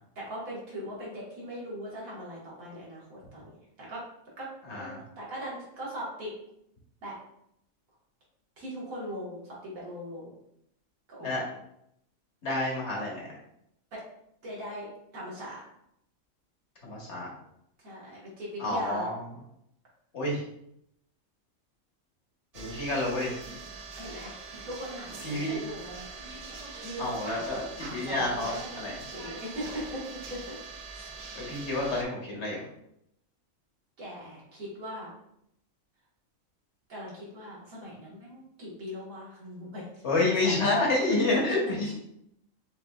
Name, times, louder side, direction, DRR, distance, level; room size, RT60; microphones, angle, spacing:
voice 1, 0.2-3.5 3.8-4.0 4.4-6.3 7.0-7.2 8.6-10.3 11.1-11.3 13.9-14.0 14.4-15.6 17.8-19.1 24.0-26.1 26.5-27.5 27.8-30.5 30.9-31.1 34.0-35.1 36.9-39.9 40.3-40.5, equal, 85° right, -6 dB, 1.9 m, -40 dB
voice 2, 4.7-5.0 11.2-11.4 12.4-13.2 16.8-17.3 18.6-19.1 20.1-20.4 22.5-23.3 25.2-25.6 27.0-27.6 27.9-29.0 31.3-32.6 40.0-41.9, left 2 dB, 55° left, -3 dB, 1.3 m, -28 dB
sound 1, 22.5-32.0, right 4 dB, 50° right, 0.4 m, -43 dB
6.1 x 2.6 x 2.3 m, 0.76 s
omnidirectional pair, 1.4 m